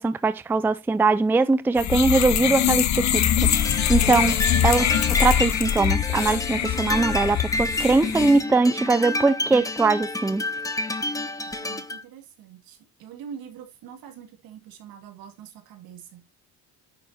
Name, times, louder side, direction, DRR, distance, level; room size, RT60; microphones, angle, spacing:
voice 1, 0.0-3.3 3.9-4.4 4.6-10.5, right 3 dB, 5° right, 0.4 m, -21 dB
sound 1, 1.8-8.4, left 10 dB, 50° left, 1.0 m, -23 dB
sound 2, 3.1-12.0, left 2 dB, 10° left, 0.9 m, -29 dB
voice 2, 11.5-16.2, right 8 dB, 75° right, 2.9 m, -44 dB
10.0 x 7.1 x 2.9 m
cardioid pair, 140°, 35 cm